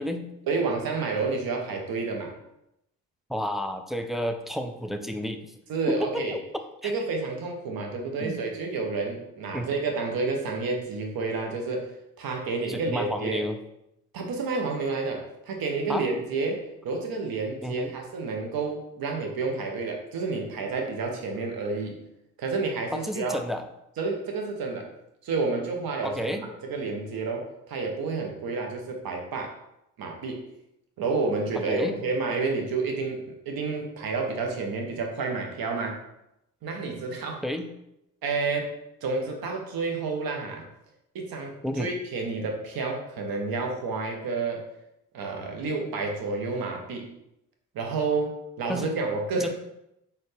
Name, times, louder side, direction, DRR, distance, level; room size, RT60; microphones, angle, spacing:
voice 1, 0.4-2.3 5.7-6.4 6.8-11.9 12.2-13.4 14.1-22.0 22.4-23.4 24.0-24.9 25.2-29.5 30.0-30.4 31.0-36.0 36.6-37.4 38.2-38.7 39.0-40.7 41.1-44.7 45.1-47.1 47.7-49.5, right 4 dB, 60° right, 2 dB, 1.0 m, -30 dB
voice 2, 3.3-5.5 5.9-6.4 6.8-6.9 8.2-8.4 9.5-9.7 12.7-13.6 15.9-16.1 17.6-17.9 22.9-23.6 26.0-26.4 31.7-32.0 37.4-37.7 41.6-41.9 48.7-49.0 49.4-49.5, equal, ahead, 6 dB, 0.3 m, -31 dB
4.1 x 2.6 x 3.3 m, 0.83 s
hypercardioid pair, 45°, 41 cm